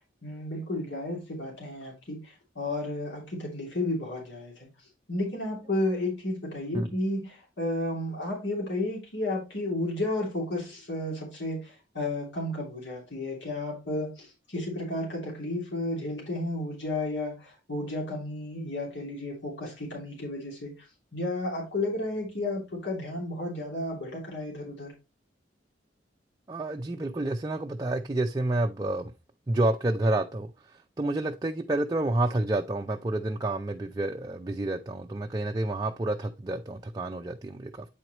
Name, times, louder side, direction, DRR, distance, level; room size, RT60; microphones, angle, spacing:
voice 1, 0.2-2.2 2.5-4.7 5.1-20.7 21.1-24.9, left 1 dB, 70° left, 2.8 m, -32 dB
voice 2, 26.5-29.1 29.5-37.9, right 2 dB, 20° right, 0.5 m, -29 dB
8.7 x 4.6 x 2.9 m
head